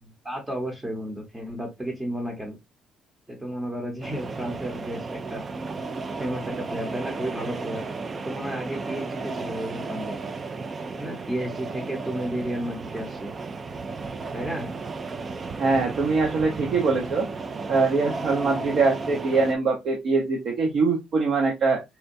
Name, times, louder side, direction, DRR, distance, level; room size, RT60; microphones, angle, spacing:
voice 1, 0.0-2.6 3.3-5.4 6.2-7.8 8.2-10.1 11.0-13.3 14.3-14.7, right 1 dB, 10° right, 1 dB, 0.8 m, -32 dB
sound 1, 4.0-19.5, right 4 dB, 25° right, 0.3 m, -34 dB
voice 2, 15.6-17.3 17.7-21.8, right 4 dB, 50° right, 0 dB, 0.8 m, -23 dB
4.3 x 2.2 x 2.5 m, 0.20 s
cardioid pair, 160°, 0 cm